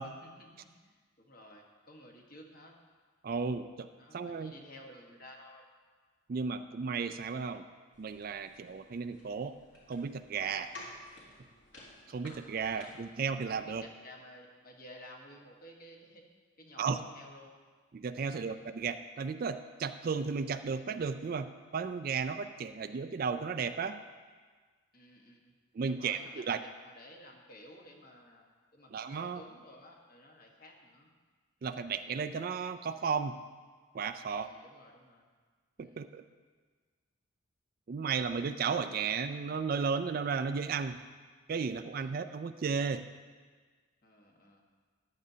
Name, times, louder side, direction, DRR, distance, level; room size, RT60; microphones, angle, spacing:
voice 1, 0.0-2.7 3.9-5.7 12.8-12.9 13.5-16.2 16.6-17.5 18.2-18.6 24.9-25.5 25.9-28.4 28.7-31.1 34.4-35.3 35.8-36.0 39.0-39.4 42.0-42.1 44.0-44.6, left 1 dB, 45° left, 0 dB, 1.4 m, -54 dB
voice 2, 3.2-4.6 6.3-7.6 8.0-9.5 9.9-10.7 12.1-13.8 16.8-17.0 17.9-24.0 25.7-26.6 28.9-29.4 31.6-33.4 33.9-34.5 35.8-36.2 37.9-41.0 41.5-43.0, right 5 dB, 45° right, 10 dB, 0.3 m, -34 dB
sound 1, 7.9-13.1, left 2 dB, 60° left, 2.9 m, -53 dB
13.5 x 10.5 x 2.8 m, 1.5 s
head